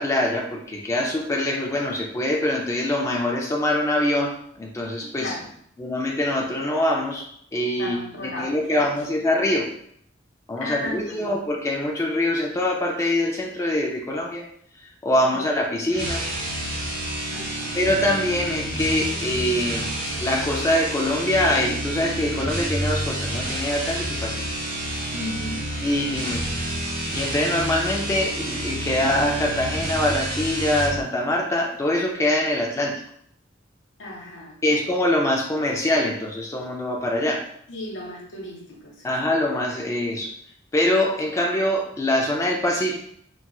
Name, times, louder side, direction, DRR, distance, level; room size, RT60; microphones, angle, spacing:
voice 1, 0.0-5.3 5.8-7.2 7.5-9.7 10.5-14.4 15.0-16.2 17.7-19.9 20.2-24.4 25.8-26.5 27.1-32.9 34.6-37.4 39.0-40.3 40.7-43.0, left 1 dB, 15° left, -1 dB, 0.3 m, -24 dB
voice 2, 5.2-5.5 7.7-8.8 10.5-11.3 15.3-15.4 17.3-17.8 25.1-25.7 34.0-34.8 37.7-39.3, left 1 dB, 80° left, -2 dB, 0.9 m, -35 dB
sound 1, 15.9-31.0, right 1 dB, 50° right, 0.9 m, -29 dB
4.1 x 2.3 x 2.3 m, 0.66 s
head